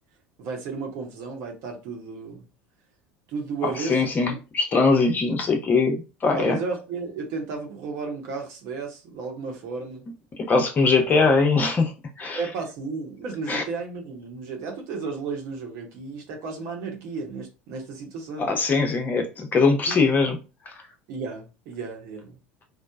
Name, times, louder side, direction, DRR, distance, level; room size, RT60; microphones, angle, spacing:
voice 1, 0.4-2.4 3.3-4.4 6.3-10.1 11.2-11.3 12.3-18.5 19.9-20.0 21.1-22.4, right 4 dB, 60° right, 0.9 m, -33 dB
voice 2, 3.6-6.6 10.5-11.9 12.2-12.4 13.5-13.6 18.4-20.4, left 4 dB, 30° left, 0.7 m, -21 dB
3.0 x 2.0 x 2.3 m
hypercardioid pair, 80°, 6 cm